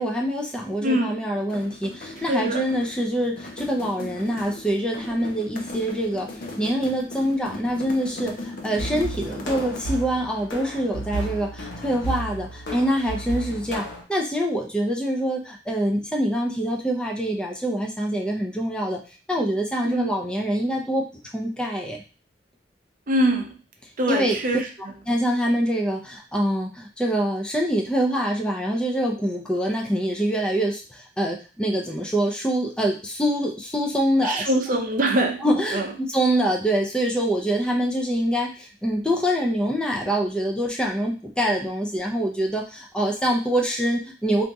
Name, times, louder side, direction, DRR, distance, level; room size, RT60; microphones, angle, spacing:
voice 1, 0.0-6.3 6.6-19.0 19.3-21.0 21.3-22.0 24.1-24.4 25.1-34.5 35.4-44.4, equal, 5° left, 0 dB, 0.5 m, -25 dB
voice 2, 0.8-1.2 2.3-2.7 19.8-20.1 23.1-23.5 24.0-24.6 34.2-35.4 35.7-35.9, right 1 dB, 45° right, 3 dB, 0.6 m, -23 dB
sound 1, 1.3-10.0, left 2 dB, 50° left, 0.5 m, -38 dB
sound 2, 8.8-14.0, right 1 dB, 75° left, 0.9 m, -33 dB
2.8 x 2.6 x 3.5 m, 0.34 s
head